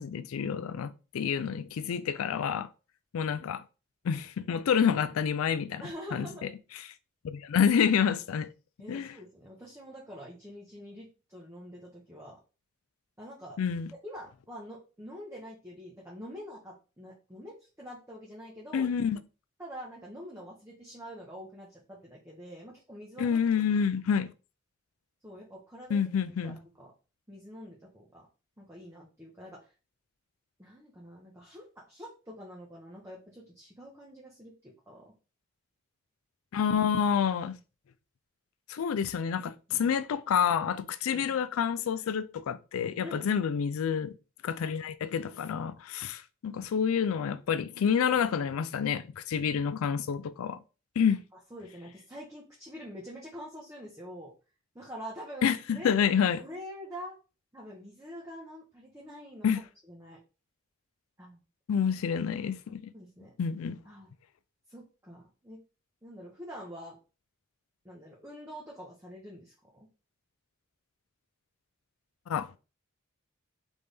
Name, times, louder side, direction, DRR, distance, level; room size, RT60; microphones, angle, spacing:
voice 1, 0.0-2.7 3.1-3.6 4.0-5.8 6.1-6.3 6.8-6.9 7.2-8.5 8.9-9.1 13.6-13.9 18.7-19.2 23.2-24.3 25.9-26.6 36.5-37.5 38.7-44.1 44.4-50.6 51.0-51.2 55.4-56.4 59.4-59.6 61.7-62.9 63.4-63.8 72.3-72.6, left 7 dB, 90° left, 0.4 m, -28 dB
voice 2, 5.8-6.5 8.8-12.4 13.2-13.6 14.0-18.9 19.6-23.4 25.2-26.0 26.4-26.9 27.3-28.3 28.6-29.7 30.6-35.1 39.7-39.9 41.1-41.3 43.0-43.4 51.5-54.3 54.7-55.9 56.4-57.2 57.5-60.2 61.2-61.4 62.9-63.3 63.8-64.1 64.7-65.6 66.0-67.0 67.8-69.9, equal, 15° right, 0.9 m, -46 dB
4.1 x 3.4 x 3.4 m
head